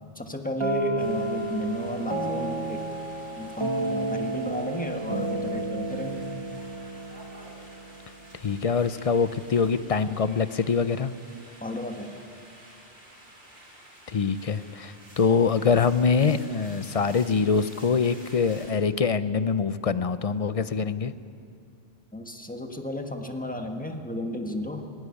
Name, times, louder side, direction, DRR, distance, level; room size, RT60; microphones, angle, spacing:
voice 1, 0.1-2.8 3.4-6.3 11.6-12.2 22.1-24.8, left 1 dB, 10° left, 3 dB, 1.4 m, -33 dB
sound 1, 0.6-8.3, right 2 dB, 30° right, 1.1 m, -31 dB
sound 2, 1.0-18.7, right 1 dB, 70° right, 4.0 m, -50 dB
voice 2, 8.4-11.1 14.1-21.1, left 5 dB, 45° left, 13 dB, 0.5 m, -24 dB
17.5 x 17.0 x 9.8 m, 2.5 s
omnidirectional pair, 1.1 m